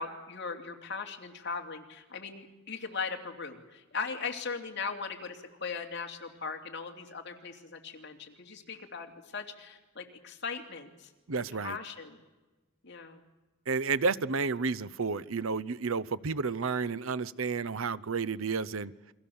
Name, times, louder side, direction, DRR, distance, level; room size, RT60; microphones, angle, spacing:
voice 1, 0.0-11.1 11.4-12.2 12.8-13.2, left 5 dB, 55° left, 2 dB, 2.8 m, -39 dB
voice 2, 11.3-11.8 13.7-18.9, right 4 dB, 75° right, 17 dB, 0.7 m, -31 dB
29.0 x 22.5 x 7.1 m, 1.1 s
head